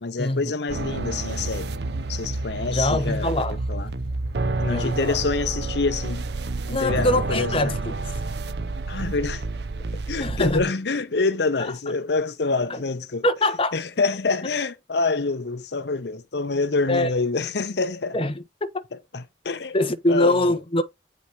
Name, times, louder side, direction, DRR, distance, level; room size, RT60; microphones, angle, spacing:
voice 1, 0.0-1.7 2.1-3.9 4.6-6.2 6.7-7.8 8.9-9.4 9.9-13.3 13.7-18.2 19.1-20.6, left 3 dB, 65° left, 0.7 m, -26 dB
sound 1, 0.7-10.6, right 2 dB, 65° right, 0.7 m, -29 dB
voice 2, 2.7-3.9 4.7-5.2 6.7-7.9 10.2-10.6 12.7-12.8 13.2-13.7 16.9-17.1 18.1-18.3 18.6-18.7 19.7-20.8, left 1 dB, 30° left, 1.1 m, -23 dB
8.6 x 5.5 x 3.0 m
head